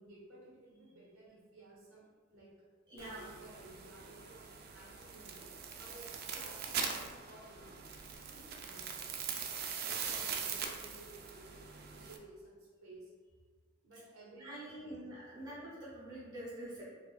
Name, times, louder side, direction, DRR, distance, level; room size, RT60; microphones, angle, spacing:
voice 1, 0.0-2.0 2.3-2.5 3.0-5.5 5.8-9.0 9.8-11.7 11.9-13.1 13.8-15.0 15.4-15.6 16.7-16.8, right 2 dB, 80° right, -5 dB, 1.0 m, -56 dB
voice 2, 2.9-3.3 14.4-16.8, right 1 dB, 20° right, -10 dB, 1.4 m, -46 dB
sound 1, 3.0-12.2, right 6 dB, 50° right, 0.3 m, -42 dB
4.4 x 2.5 x 2.2 m, 1.5 s
head